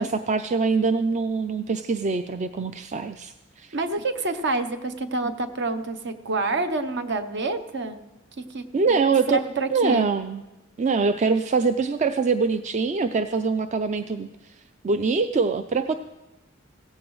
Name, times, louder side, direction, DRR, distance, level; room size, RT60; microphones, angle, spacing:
voice 1, 0.0-3.8 8.7-9.4 9.7-10.4 10.8-15.9, right 4 dB, 35° right, 9 dB, 0.4 m, -24 dB
voice 2, 3.7-8.0 8.5-8.6 9.3-10.1, right 2 dB, 60° right, 10 dB, 0.9 m, -27 dB
16.5 x 15.0 x 3.2 m, 1.0 s
head